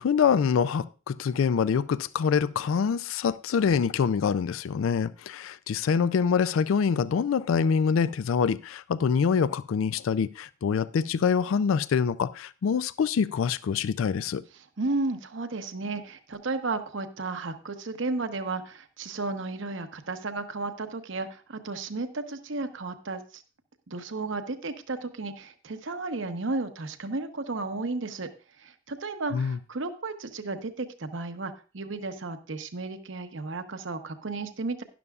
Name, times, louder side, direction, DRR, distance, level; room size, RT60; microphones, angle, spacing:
voice 1, 0.0-14.4 29.3-29.6, left 6 dB, 85° left, 0.4 m, -25 dB
voice 2, 14.8-23.4 23.9-28.3 28.6-34.8, right 3 dB, 70° right, 0.9 m, -33 dB
12.0 x 11.0 x 2.4 m
head